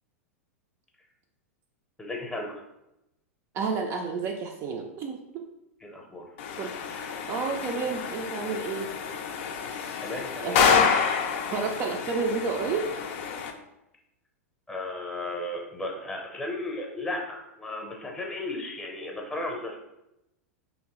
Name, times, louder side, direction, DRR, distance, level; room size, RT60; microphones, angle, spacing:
voice 1, 2.0-2.6 5.8-6.2 10.0-10.6 14.7-19.8, left 2 dB, 10° left, 0 dB, 0.7 m, -35 dB
voice 2, 3.5-5.4 6.6-6.7 7.3-8.9 10.4-11.2 11.5-13.0, right 4 dB, 35° right, 2 dB, 0.4 m, -30 dB
sound 1, 6.4-13.5, left 6 dB, 55° left, 0.4 m, -28 dB
3.1 x 2.6 x 3.0 m, 0.89 s
figure-of-eight pair, 95°, 8 cm